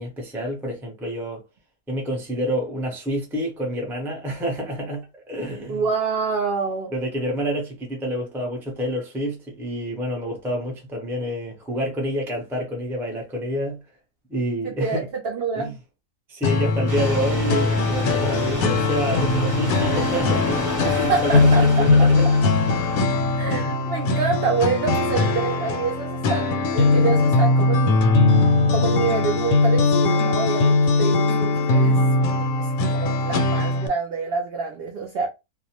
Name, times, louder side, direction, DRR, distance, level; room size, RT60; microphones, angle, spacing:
voice 1, 0.0-1.4 1.9-5.8 6.9-13.8 14.3-15.1 15.6-15.7 16.3-22.3 22.9-23.1 23.5-23.9, equal, 5° right, 0.3 m, -28 dB
voice 2, 5.7-6.9 14.6-15.7 20.8-22.1 23.4-28.0 28.7-32.0 32.3-35.3, right 5 dB, 70° right, 0.5 m, -27 dB
sound 1, 16.4-33.9, left 3 dB, 70° left, 0.9 m, -20 dB
sound 2, 16.9-23.0, right 1 dB, 25° right, 0.9 m, -31 dB
2.5 x 2.1 x 2.8 m
omnidirectional pair, 1.6 m